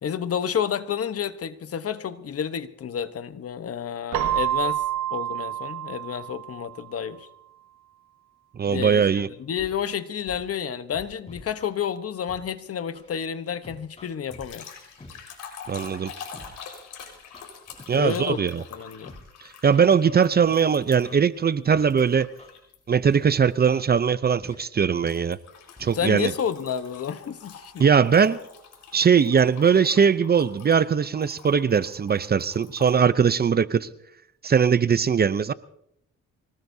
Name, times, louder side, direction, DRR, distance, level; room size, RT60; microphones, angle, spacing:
voice 1, 0.0-4.8 5.1-7.3 8.7-14.7 17.9-19.2 25.9-27.9, left 8 dB, 50° left, 1.1 m, -30 dB
Keyboard (musical), 4.1-6.9, right 12 dB, 75° right, 1.3 m, -28 dB
voice 2, 8.6-9.3 15.7-16.1 17.9-18.6 19.6-22.3 22.9-25.4 25.8-26.3 27.8-28.4 28.9-33.9 34.4-35.5, right 6 dB, 35° right, 0.6 m, -20 dB
Scratching (performance technique), 9.6-9.7 10.3-10.4 10.9-11.7 12.3-12.4 12.9-13.1 13.6-14.5 15.0-15.1 15.6-15.9 16.3-16.5 17.0-17.8 18.3-18.5 19.0-19.2 19.7-20.5 21.0-21.2 21.7-21.8 22.1-22.5 23.0-23.2 23.6-23.8 24.4-24.5 25.1-25.2 25.8-25.9, left 2 dB, 20° left, 4.5 m, -46 dB
sound 1, 14.3-21.3 21.9-22.8 23.2-23.5 25.1-33.0, left 6 dB, 75° left, 4.6 m, -45 dB
24.5 x 18.5 x 2.8 m
cardioid pair, 90°, 30 cm